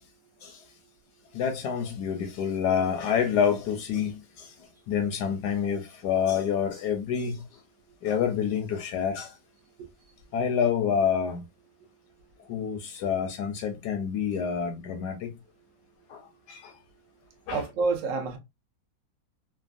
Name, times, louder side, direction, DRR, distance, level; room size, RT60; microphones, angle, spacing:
voice 1, 1.3-4.6 4.9-7.6 8.0-9.4 10.3-11.4 12.5-15.3 16.1-16.8 17.5-17.6, left 7 dB, 75° left, 1.1 m, -28 dB
voice 2, 17.5-18.4, right 4 dB, 55° right, 0.9 m, -28 dB
3.4 x 2.1 x 2.3 m
omnidirectional pair, 2.0 m